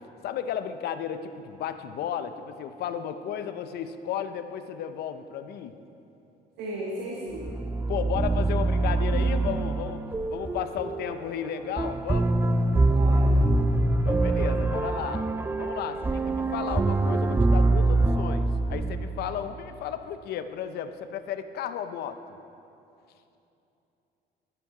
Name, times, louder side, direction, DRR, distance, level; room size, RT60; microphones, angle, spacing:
voice 1, 0.2-5.7 7.9-12.4 14.0-15.2 15.6-22.2, left 9 dB, 70° left, 10 dB, 0.7 m, -34 dB
voice 2, 6.6-7.6 12.8-13.8, right 1 dB, 80° right, -3 dB, 1.6 m, -36 dB
sound 1, 7.4-19.4, right 2 dB, 10° right, 0.4 m, -24 dB
12.5 x 11.0 x 4.9 m, 2.8 s
cardioid pair, 110°, 17 cm